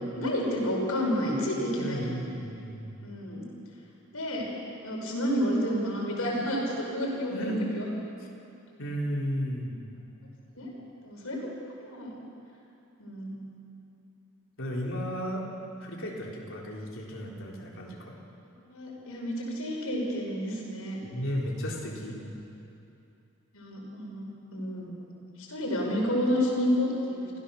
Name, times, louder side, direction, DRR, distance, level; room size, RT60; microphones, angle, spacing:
voice 1, 0.2-2.1 3.0-3.4 4.1-4.5 4.8-7.9 10.6-10.7 11.0-11.5 11.8-12.2 13.0-13.4 18.6-21.0 23.5-24.9 25.4-27.3, equal, 80° left, -1 dB, 5.5 m, -30 dB
voice 2, 1.8-2.9 7.3-7.6 8.8-9.8 14.6-15.4 15.8-18.1 21.0-22.2, equal, 60° left, -2 dB, 3.7 m, -34 dB
27.5 x 15.5 x 7.0 m, 2.7 s
head